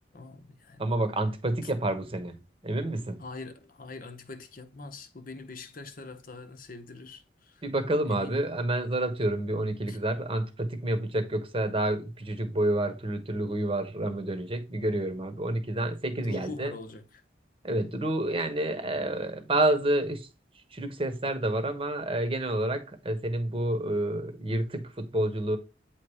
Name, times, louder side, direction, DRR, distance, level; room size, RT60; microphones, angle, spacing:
voice 1, 0.1-0.8 3.2-7.6 8.1-8.5 9.9-10.0 16.2-17.0, left 3 dB, 50° left, 0.8 m, -43 dB
voice 2, 0.8-2.3 2.6-3.2 7.6-16.7 17.6-20.3 20.7-25.6, right 1 dB, 30° right, 1.1 m, -29 dB
8.2 x 3.1 x 4.8 m
head